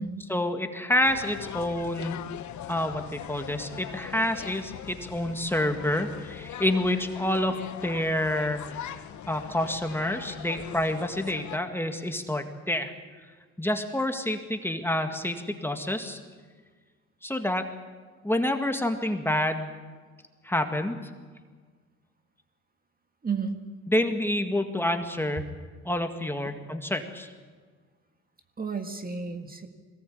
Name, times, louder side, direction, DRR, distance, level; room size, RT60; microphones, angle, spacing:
voice 1, 0.3-2.2 2.7-9.0 9.3-12.9 13.6-16.2 17.2-17.7 18.2-19.7 20.4-21.0 23.9-25.5 25.8-27.3, left 1 dB, 5° left, 5 dB, 2.0 m, -28 dB
sound 1, 1.0-11.6, left 11 dB, 70° left, 1.1 m, -41 dB
voice 2, 23.2-23.6 26.4-26.6 28.6-29.7, right 5 dB, 30° right, 6 dB, 1.8 m, -32 dB
21.5 x 18.0 x 8.6 m, 1.5 s
cardioid pair, 90°, 30 cm